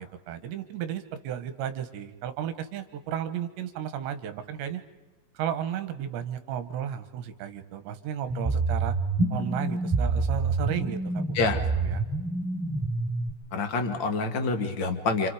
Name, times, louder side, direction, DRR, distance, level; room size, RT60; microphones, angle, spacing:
voice 1, 0.0-4.8 5.3-9.0 9.3-12.0, right 9 dB, 75° right, 10 dB, 3.3 m, -34 dB
sound 1, 8.3-13.3, right 3 dB, 10° right, 3.9 m, -27 dB
voice 2, 13.5-15.3, left 4 dB, 50° left, 6 dB, 1.4 m, -27 dB
29.5 x 28.5 x 5.0 m, 1.2 s
omnidirectional pair, 5.5 m